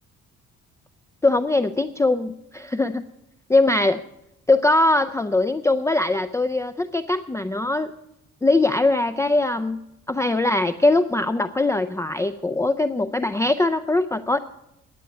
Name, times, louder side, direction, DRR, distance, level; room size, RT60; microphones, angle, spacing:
voice 1, 1.2-3.0 3.5-4.0 4.5-7.9 8.4-9.8 10.1-14.4, left 2 dB, 10° left, 11 dB, 0.4 m, -21 dB
10.5 x 8.5 x 8.9 m, 0.83 s
cardioid pair, 90°, 30 cm